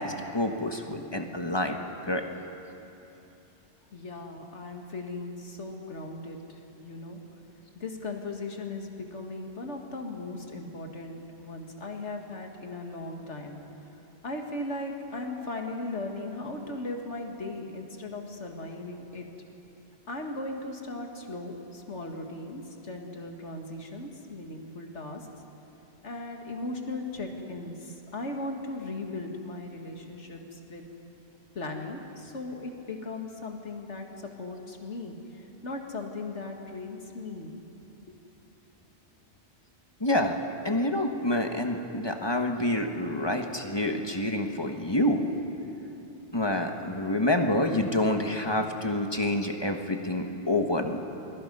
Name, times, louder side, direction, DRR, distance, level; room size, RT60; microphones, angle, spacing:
voice 1, 0.0-1.8 2.1-2.2 40.0-40.4 40.6-45.2 46.3-51.0, left 1 dB, 25° left, 4 dB, 1.3 m, -27 dB
voice 2, 3.9-7.2 7.7-13.6 14.2-19.3 20.1-25.3 26.0-30.9 31.5-37.6, left 2 dB, 85° left, 2 dB, 2.3 m, -38 dB
28.0 x 21.5 x 5.5 m, 3.0 s
omnidirectional pair, 1.2 m